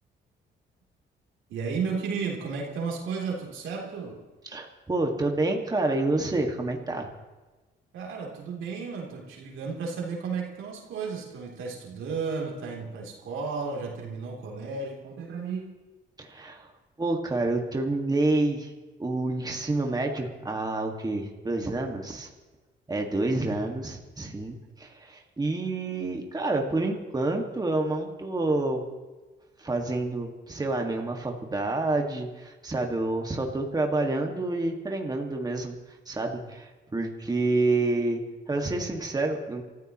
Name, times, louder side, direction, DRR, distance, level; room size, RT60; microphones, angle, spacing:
voice 1, 1.5-4.2 7.9-15.7, right 5 dB, 80° right, -1 dB, 3.3 m, -33 dB
voice 2, 4.4-7.1 16.2-16.7 17.0-18.7 19.0-22.3 22.9-28.8 29.6-35.8 36.1-39.6, right 2 dB, 20° right, 2 dB, 1.9 m, -28 dB
28.5 x 14.0 x 3.1 m, 1.2 s
cardioid pair, 90°, 20 cm